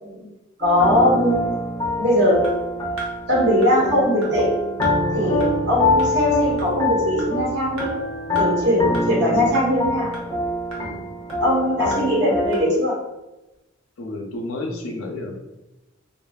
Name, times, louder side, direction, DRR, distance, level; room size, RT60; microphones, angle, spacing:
sound 1, 0.6-12.7, left 1 dB, 20° left, 0.5 m, -25 dB
voice 1, 0.6-1.4 2.0-2.4 3.3-4.5 5.1-7.9 8.4-10.1 11.4-12.9, left 1 dB, 55° right, -5 dB, 1.1 m, -20 dB
sound 2, 2.4-2.5 3.0-3.1 3.6-3.7 4.2-4.3 4.8-4.9 5.4-5.5 6.0-6.1 6.6-6.7 7.2-7.3 7.8-7.9 8.4-8.5 8.9-9.0 9.5-9.7 10.1-10.2 10.7-10.8 11.3-11.4 11.9-12.0 12.5-12.6, right 3 dB, 85° right, 0.8 m, -33 dB
voice 2, 9.0-9.3 10.8-11.1 14.0-15.3, left 2 dB, 85° left, 1 dB, 0.5 m, -32 dB
2.7 x 2.6 x 2.3 m, 0.98 s
head